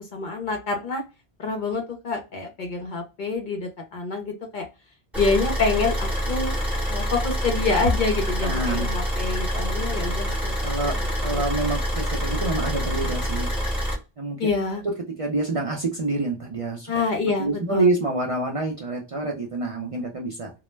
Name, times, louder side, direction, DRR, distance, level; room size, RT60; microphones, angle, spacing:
voice 1, 0.1-1.0 1.4-4.7 5.2-6.5 6.9-11.4 14.4-14.8 16.9-17.9, left 4 dB, 55° left, 3 dB, 0.7 m, -27 dB
Car / Idling, 5.1-13.9, equal, ahead, 0.9 m, -26 dB
voice 2, 8.4-8.8 9.5-9.7 10.6-11.0 11.2-13.5 14.2-14.5 15.2-16.9 17.4-20.5, right 2 dB, 45° right, -1 dB, 0.5 m, -27 dB
2.2 x 2.0 x 3.1 m, 0.28 s
omnidirectional pair, 1.1 m